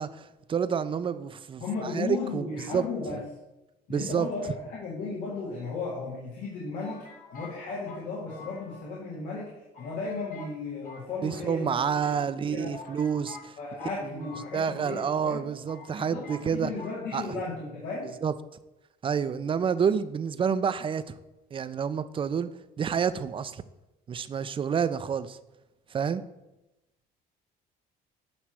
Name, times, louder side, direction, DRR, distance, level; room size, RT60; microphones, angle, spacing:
voice 1, 0.0-2.4 2.7-2.9 3.9-4.3 11.2-13.6 14.2-16.7 17.1-17.2 18.2-18.3 19.0-21.0 21.5-22.5 22.8-23.6 24.1-25.4 25.9-26.2, right 7 dB, 30° right, 14 dB, 0.4 m, -28 dB
voice 2, 1.6-3.2 3.9-7.0 7.3-11.7 12.0-12.8 13.6-15.4 16.0-18.1, left 4 dB, 80° left, -5 dB, 1.9 m, -35 dB
sound 1, 5.3-6.1 6.8-9.1 9.4-9.5 9.7-10.6 10.8-11.8 12.4-12.5 12.7-15.0 15.3-15.4 15.7-16.5 16.8-17.0, left 4 dB, 55° left, 1.4 m, -48 dB
9.2 x 3.1 x 6.1 m, 0.96 s
cardioid pair, 110°, 17 cm